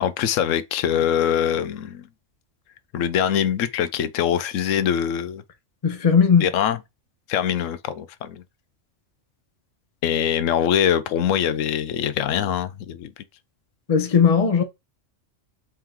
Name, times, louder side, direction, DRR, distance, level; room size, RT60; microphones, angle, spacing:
voice 1, 0.0-2.0 2.9-5.4 6.4-6.8 7.3-8.4 10.0-13.1, left 9 dB, 90° left, 1.0 m, -23 dB
voice 2, 5.8-6.5 13.9-14.6, left 6 dB, 35° left, 0.7 m, -17 dB
4.5 x 3.7 x 2.9 m
omnidirectional pair, 1.3 m